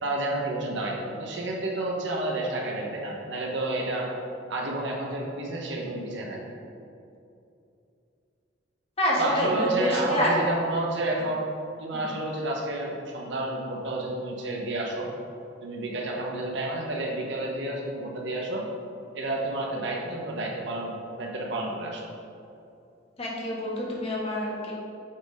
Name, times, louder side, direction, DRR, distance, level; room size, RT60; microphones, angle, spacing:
voice 1, 0.0-4.1 4.5-6.4 9.2-11.5 11.8-15.1 15.6-18.6 19.1-22.0, right 2 dB, 70° right, -1 dB, 1.2 m, -30 dB
voice 2, 9.0-10.3 11.9-12.1 23.2-24.7, left 1 dB, 35° left, -5 dB, 1.6 m, -27 dB
7.9 x 4.1 x 5.1 m, 2.6 s
head